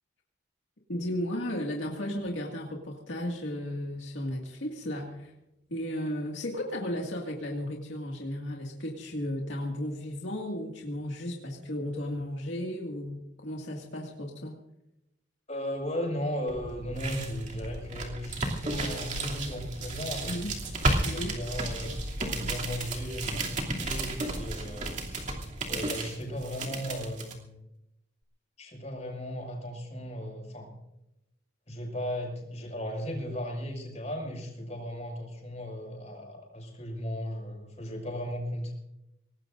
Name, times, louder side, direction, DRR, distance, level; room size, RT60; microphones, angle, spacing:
voice 1, 0.9-5.3 5.7-14.6 20.3-20.5 21.0-21.4, left 1 dB, 75° left, -1 dB, 2.2 m, -34 dB
voice 2, 15.5-20.4 21.0-21.9 22.3-25.4 25.7-27.6 28.6-30.7 31.7-38.7, equal, 35° left, 1 dB, 6.1 m, -36 dB
sound 1, 16.5-27.3, right 2 dB, 40° right, 2.8 m, -33 dB
25.0 x 19.0 x 2.6 m, 0.88 s
head